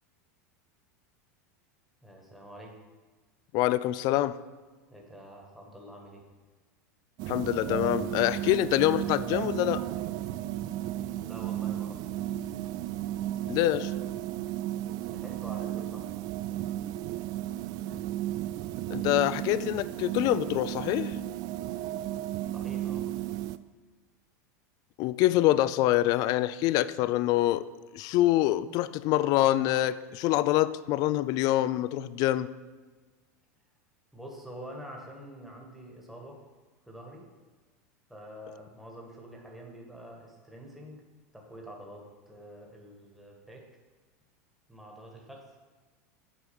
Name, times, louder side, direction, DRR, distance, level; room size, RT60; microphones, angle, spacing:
voice 1, 2.0-2.8 4.9-6.2 11.2-12.2 15.0-16.2 22.5-23.1 34.1-36.4 36.9-37.3 38.1-41.0 41.3-43.7 44.7-45.5, equal, ahead, -1 dB, 1.6 m, -46 dB
voice 2, 3.5-4.4 7.3-9.8 13.5-13.9 18.9-21.2 25.0-27.6 27.9-32.5, left 15 dB, 50° left, 16 dB, 0.4 m, -25 dB
sound 1, 7.2-23.6, right 13 dB, 50° right, 0.4 m, -34 dB
8.6 x 4.6 x 6.9 m, 1.3 s
hypercardioid pair, 105°, 9 cm